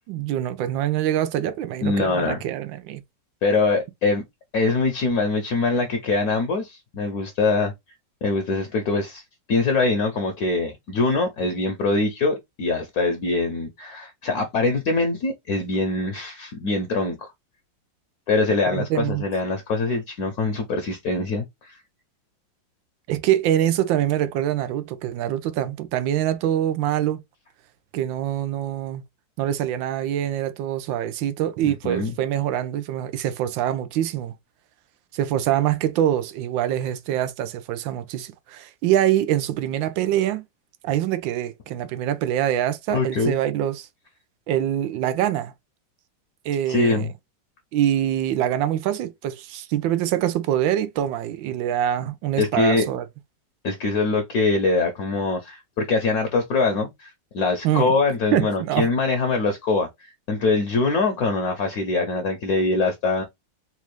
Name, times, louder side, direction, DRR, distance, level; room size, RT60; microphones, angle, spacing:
voice 1, 0.1-3.0 18.7-19.2 23.1-27.2 27.9-29.0 29.4-34.3 35.1-40.4 40.8-43.9 44.5-45.5 46.4-47.1 47.7-53.0 57.6-57.9 58.3-58.9, right 11 dB, 90° right, 1.4 m, -24 dB
voice 2, 1.8-2.4 3.4-4.2 4.5-7.7 8.2-9.2 9.5-17.3 18.3-21.8 31.7-32.1 42.9-43.3 46.7-47.1 52.4-52.9 53.6-63.2, left 3 dB, 60° left, 1.1 m, -23 dB
4.2 x 2.4 x 3.1 m
omnidirectional pair, 2.0 m